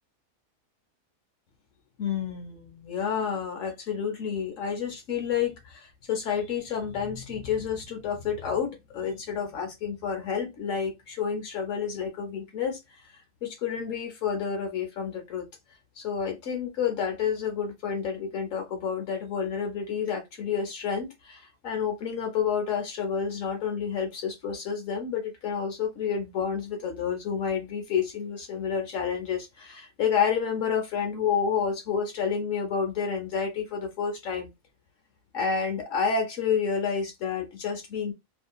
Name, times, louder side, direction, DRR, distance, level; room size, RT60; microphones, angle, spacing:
voice 1, 2.0-12.8 13.4-15.4 16.0-34.5 35.3-38.1, left 7 dB, 70° left, 1.0 m, -29 dB
2.7 x 2.5 x 2.2 m
omnidirectional pair, 1.4 m